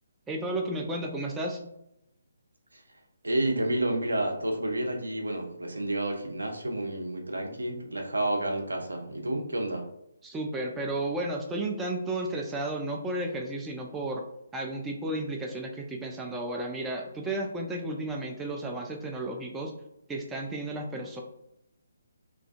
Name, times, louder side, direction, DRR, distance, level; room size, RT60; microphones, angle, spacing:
voice 1, 0.3-1.7 10.2-14.2 14.5-19.7 20.1-21.2, right 1 dB, 10° right, 0 dB, 0.3 m, -33 dB
voice 2, 3.2-9.9, right 1 dB, 80° right, 2 dB, 0.6 m, -30 dB
2.3 x 2.2 x 2.4 m, 0.79 s
figure-of-eight pair, 145°, 0 cm